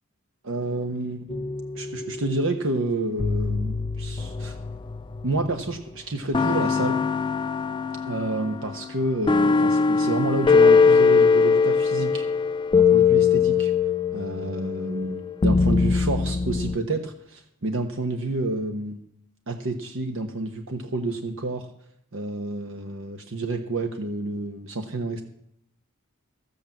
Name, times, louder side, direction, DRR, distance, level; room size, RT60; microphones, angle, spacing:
voice 1, 0.4-1.5 1.8-4.6 5.2-7.0 8.1-12.2 12.7-13.7 14.1-19.0 19.5-21.7 22.1-25.2, right 2 dB, 65° right, 4 dB, 1.2 m, -29 dB
sound 1, 1.3-2.5 3.2-5.8 6.3-16.8, left 5 dB, 20° left, 0.4 m, -22 dB
13.5 x 8.4 x 7.1 m, 0.72 s
head